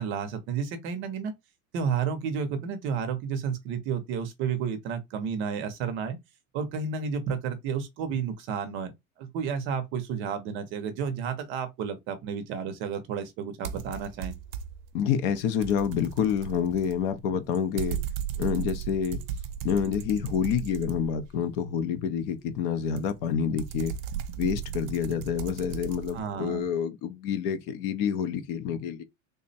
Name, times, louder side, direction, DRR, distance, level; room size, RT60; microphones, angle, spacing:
voice 1, 0.0-1.3 1.7-6.2 6.5-8.9 9.2-14.3 26.1-26.7, right 6 dB, 30° right, 0.6 m, -31 dB
sound 1, 13.6-14.9 15.3-21.5 23.0-26.2, right 9 dB, 75° right, 0.6 m, -36 dB
voice 2, 14.9-18.0 18.4-19.2 19.6-23.9 24.4-29.0, left 8 dB, 45° left, 0.5 m, -28 dB
3.5 x 2.1 x 3.9 m
supercardioid pair, 170°, 39 cm